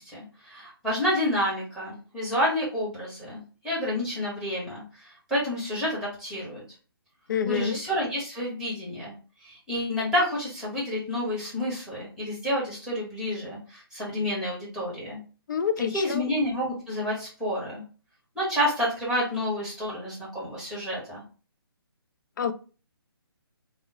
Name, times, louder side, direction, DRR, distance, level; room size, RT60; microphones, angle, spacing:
voice 1, 0.0-6.6 7.4-9.1 9.4-15.2 15.9-17.8 18.3-21.2, left 1 dB, 5° right, 1.2 m, -29 dB
voice 2, 7.3-7.8 15.5-16.2 22.4-22.5, left 7 dB, 50° left, 0.4 m, -27 dB
3.5 x 2.0 x 2.8 m
figure-of-eight pair, 140°, 13 cm